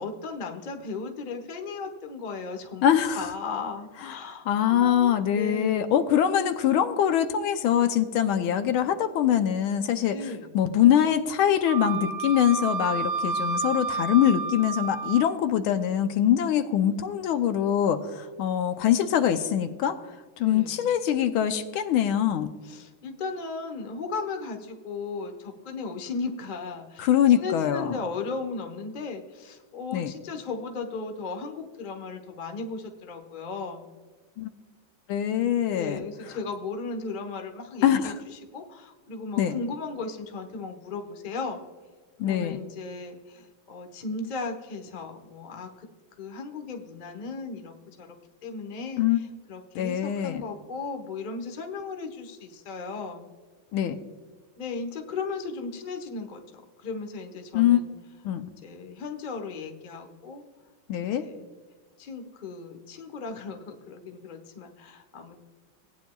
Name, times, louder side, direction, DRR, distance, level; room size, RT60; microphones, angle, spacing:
voice 1, 0.0-2.8 3.2-6.0 10.1-10.6 20.4-20.9 22.6-27.1 27.3-33.9 35.7-38.1 38.5-41.6 42.3-45.9 46.2-53.3 54.6-56.4 56.8-57.9 58.4-60.4 61.0-61.4 62.0-65.4, left 4 dB, 45° left, 4 dB, 0.6 m, -36 dB
voice 2, 2.8-3.3 4.5-20.0 20.4-22.5 27.0-28.0 29.9-30.1 34.4-34.5 35.1-36.0 37.8-38.2 39.4-39.6 42.2-42.6 49.0-49.2 49.7-50.4 53.7-54.0 57.5-57.8 58.2-58.5 60.9-61.3, left 10 dB, 75° left, 9 dB, 1.4 m, -23 dB
Wind instrument woodwind instrument, 11.7-15.3, right 4 dB, 65° right, 1.1 m, -30 dB
17.5 x 9.4 x 2.3 m, 1.4 s
omnidirectional pair, 2.4 m